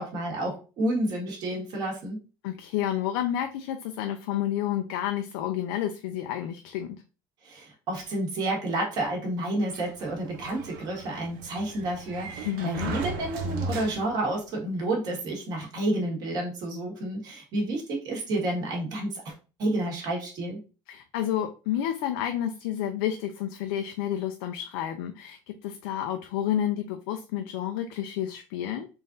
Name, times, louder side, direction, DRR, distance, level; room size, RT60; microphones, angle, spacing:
voice 1, 0.0-2.2 7.4-19.3 19.6-20.6, right 1 dB, 35° right, -1 dB, 1.5 m, -30 dB
voice 2, 2.4-7.0 12.4-12.9 20.9-28.9, left 11 dB, 90° left, 6 dB, 0.5 m, -30 dB
Sliding door, 9.7-14.4, right 3 dB, 85° right, 0.8 m, -37 dB
3.9 x 2.5 x 3.8 m, 0.33 s
cardioid pair, 175°, 11 cm